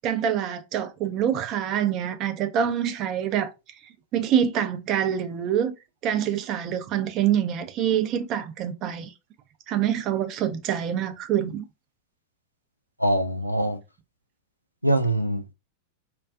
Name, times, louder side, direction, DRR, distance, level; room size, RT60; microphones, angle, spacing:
voice 1, 0.0-3.5 4.1-5.7 6.0-9.1 9.7-11.6, right 9 dB, 35° right, 0.4 m, -25 dB
voice 2, 13.0-13.8 14.8-15.5, right 1 dB, 90° left, 0.3 m, -23 dB
2.4 x 2.2 x 2.3 m
figure-of-eight pair, 90°, 0 cm